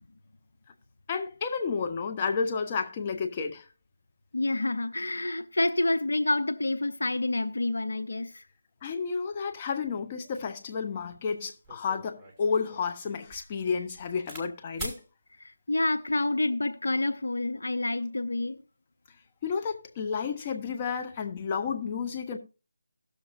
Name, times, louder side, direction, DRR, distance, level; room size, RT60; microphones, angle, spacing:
voice 1, 1.1-3.7 8.8-15.0 19.4-22.4, left 5 dB, 25° left, 1.2 m, -31 dB
voice 2, 4.3-8.4 15.7-18.6, left 2 dB, 70° left, 0.7 m, -28 dB
sound 1, 11.1-11.2 11.6-14.5 14.8-15.0 15.9-16.3, right 2 dB, ahead, 2.1 m, -43 dB
17.5 x 6.7 x 2.5 m
figure-of-eight pair, 160°, 0 cm